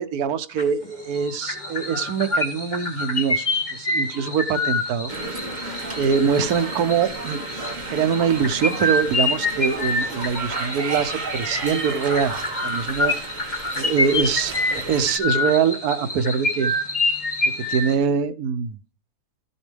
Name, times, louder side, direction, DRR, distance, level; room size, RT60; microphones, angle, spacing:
voice 1, 0.0-3.5 3.7-5.1 5.6-7.5 7.9-12.3 12.6-13.2 13.8-16.7 17.7-18.8, right 6 dB, 75° right, 11 dB, 1.2 m, -23 dB
sound 1, 0.6-0.9 1.1-17.9, left 2 dB, 30° left, 1.9 m, -27 dB
sound 2, 5.1-15.2, right 2 dB, 30° right, 1.7 m, -32 dB
13.5 x 7.2 x 3.4 m, 0.37 s
omnidirectional pair, 1.7 m